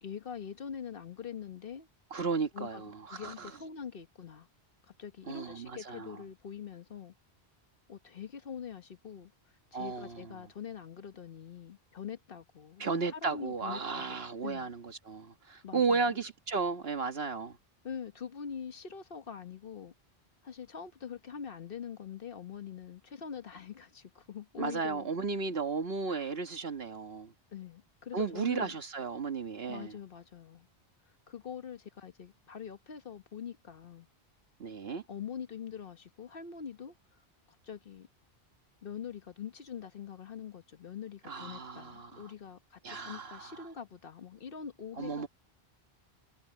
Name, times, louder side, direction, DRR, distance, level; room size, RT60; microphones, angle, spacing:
voice 1, 0.0-1.9 2.5-4.5 5.0-7.1 7.9-9.3 9.7-14.7 15.6-16.1 17.8-19.9 20.4-25.1 26.1-26.3 27.5-28.7 29.7-30.7 31.3-34.1 35.1-36.9 37.6-38.1 38.8-45.3, left 7 dB, 60° left, 1.3 m, -44 dB
voice 2, 2.1-3.5 5.3-6.2 9.7-10.4 12.8-17.6 24.6-27.3 28.1-30.0 34.6-35.0 41.3-42.3 42.8-43.7 45.0-45.3, right 4 dB, 65° right, 1.6 m, -34 dB
omnidirectional pair, 1.1 m